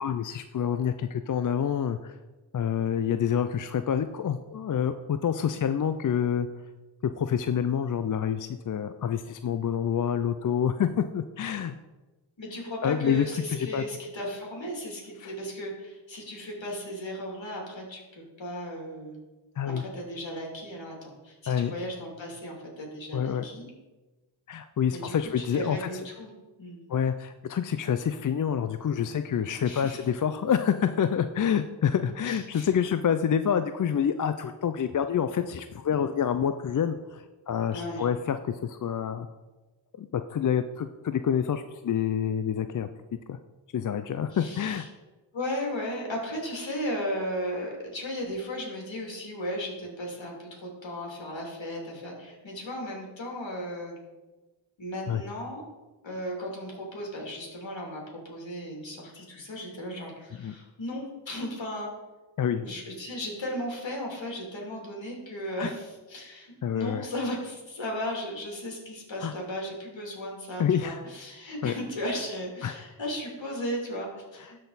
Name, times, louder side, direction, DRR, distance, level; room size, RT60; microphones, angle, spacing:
voice 1, 0.0-2.2 2.5-6.5 7.0-11.8 12.8-13.8 15.2-15.3 19.6-19.8 21.5-21.7 23.1-23.4 24.5-25.9 26.9-39.3 40.0-42.9 43.3-43.4 43.7-44.8 55.1-55.2 60.4-60.5 62.4-62.7 65.6-65.7 66.6-67.1 69.2-69.3 70.6-71.0 71.6-71.7 72.6-72.7, left 8 dB, 45° left, 10 dB, 0.5 m, -27 dB
voice 2, 12.4-19.2 19.6-23.7 24.9-26.3 26.6-26.8 29.6-30.0 32.3-32.7 37.7-38.0 44.3-44.9 45.3-54.0 54.8-55.6 56.0-61.9 62.5-74.6, equal, 65° left, -1 dB, 2.9 m, -36 dB
12.5 x 4.3 x 4.0 m, 1.2 s
cardioid pair, 45°, 48 cm